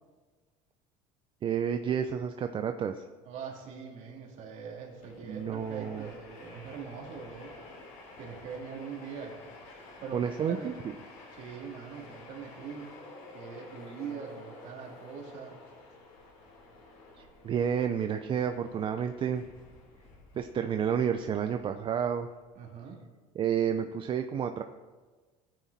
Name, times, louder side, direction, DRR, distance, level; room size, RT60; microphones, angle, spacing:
voice 1, 1.4-3.0 5.3-6.1 10.1-10.7 17.2-19.5 20.3-22.3 23.4-24.6, right 8 dB, 35° right, 7 dB, 0.6 m, -30 dB
voice 2, 3.2-7.6 8.2-9.4 10.0-10.8 11.3-13.0 13.3-15.6 22.5-23.0, right 6 dB, 55° right, 0 dB, 3.1 m, -42 dB
Train, 4.8-22.4, left 2 dB, 85° left, 4.3 m, -51 dB
15.0 x 9.3 x 4.2 m, 1.3 s
cardioid pair, 120°, 14 cm